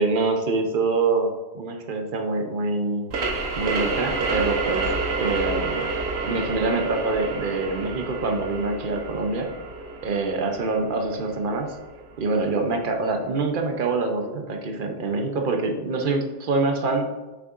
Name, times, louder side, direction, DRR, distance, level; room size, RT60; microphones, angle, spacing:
voice 1, 0.0-3.1 3.6-4.9 5.2-5.8 6.2-9.5 10.0-11.7 12.2-17.1, right 3 dB, 55° right, 4 dB, 0.8 m, -25 dB
sound 1, 3.1-12.5, right 3 dB, 75° right, 1.1 m, -29 dB
6.5 x 5.9 x 2.5 m, 1.2 s
omnidirectional pair, 1.1 m